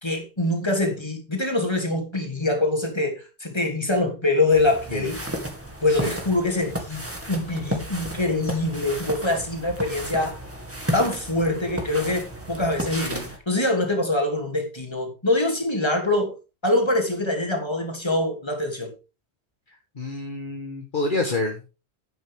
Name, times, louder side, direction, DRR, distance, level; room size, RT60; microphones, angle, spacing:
voice 1, 0.0-5.2 5.8-10.4 10.9-16.3 16.6-18.9, left 2 dB, 25° left, 3.0 m, -24 dB
sound 1, 4.5-13.4, right 1 dB, 10° right, 2.0 m, -33 dB
voice 2, 20.0-21.7, left 2 dB, 50° left, 1.6 m, -28 dB
11.0 x 9.2 x 3.6 m
omnidirectional pair, 1.1 m